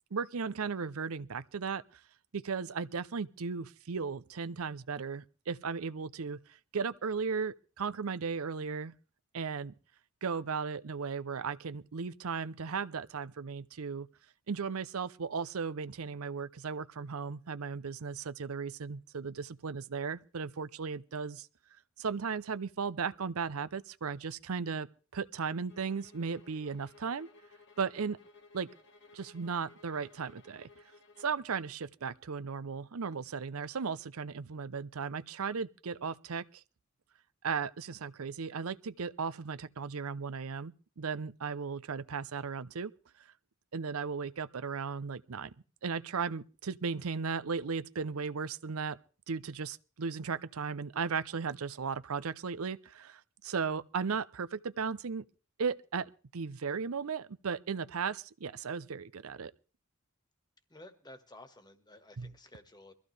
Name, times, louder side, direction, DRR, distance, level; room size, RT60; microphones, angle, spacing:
voice 1, 0.1-2.0 2.3-6.4 6.7-8.9 9.3-9.7 10.2-14.1 14.5-21.5 22.0-24.9 25.1-27.3 27.8-28.2 28.5-28.7 29.1-30.7 31.2-36.6 37.4-42.9 43.7-45.5 45.8-49.0 49.3-55.2 55.6-59.5 62.2-62.3, right 5 dB, 90° right, 0.6 m, -36 dB
sound 1, 25.7-31.4, left 3 dB, 55° left, 1.5 m, -59 dB
voice 2, 60.7-62.9, left 1 dB, 20° left, 1.5 m, -53 dB
23.0 x 15.0 x 3.3 m
head